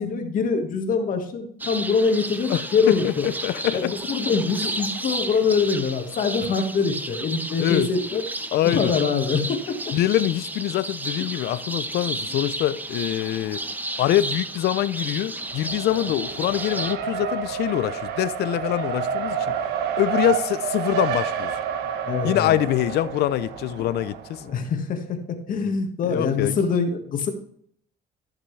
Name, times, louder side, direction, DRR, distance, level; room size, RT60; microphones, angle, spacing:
voice 1, 0.0-3.3 3.7-8.2 8.6-9.9 22.1-22.5 24.4-27.3, left 5 dB, 55° left, 1.6 m, -24 dB
sound 1, 1.6-16.9, right 2 dB, 10° right, 0.7 m, -32 dB
voice 2, 2.5-3.9 7.6-8.2 8.5-8.9 9.9-13.6 14.0-19.6 20.0-21.6 22.2-24.4 26.1-26.6, left 13 dB, 70° left, 0.6 m, -24 dB
Race car auto racing, 15.4-24.5, right 7 dB, 80° right, 1.2 m, -29 dB
14.0 x 6.0 x 3.3 m
cardioid pair, 110°, 17 cm